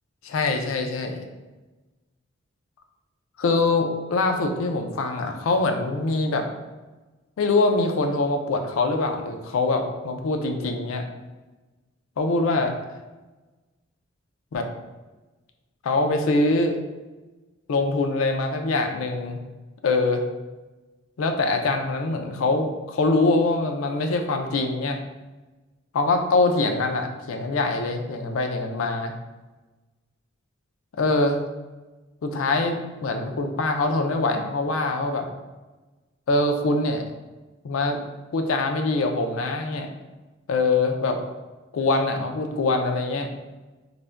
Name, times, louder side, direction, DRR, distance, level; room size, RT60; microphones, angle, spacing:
voice 1, 0.2-1.2 3.4-6.5 7.4-11.0 12.2-12.7 14.5-14.7 15.8-16.8 17.7-19.4 19.8-20.2 21.2-25.0 25.9-29.1 31.0-31.4 32.2-35.3 36.3-37.0 37.6-38.0 38.3-39.9 40.5-41.2 41.7-43.3, left 3 dB, 70° left, 5 dB, 0.4 m, -23 dB
2.4 x 2.1 x 3.3 m, 1.2 s
head